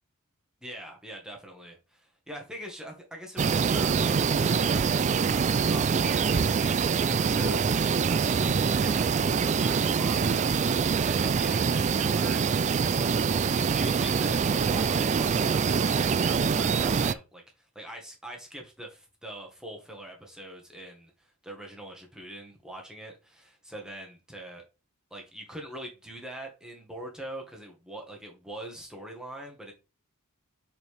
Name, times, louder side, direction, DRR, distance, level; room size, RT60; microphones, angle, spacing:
voice 1, 0.6-4.9 5.3-17.4 17.7-24.6 25.1-29.7, right 1 dB, 5° right, 1.5 m, -43 dB
sound 1, 3.4-17.1, right 5 dB, 30° right, 0.3 m, -25 dB
6.7 x 4.7 x 3.4 m
head